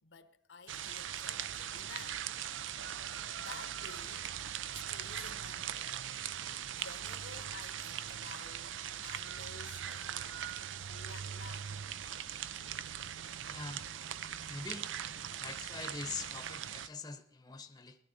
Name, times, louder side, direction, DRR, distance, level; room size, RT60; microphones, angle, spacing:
voice 1, 0.0-2.5 3.0-3.1 3.4-4.3 4.7-6.1 6.7-8.7 9.0-10.4 10.9-11.8, left 5 dB, 75° left, 0.9 m, -53 dB
sound 1, 0.7-16.9, right 9 dB, 85° right, 0.5 m, -40 dB
voice 2, 13.5-13.9 14.5-14.9 15.4-18.0, left 4 dB, 20° left, 0.8 m, -43 dB
17.0 x 12.0 x 4.0 m
head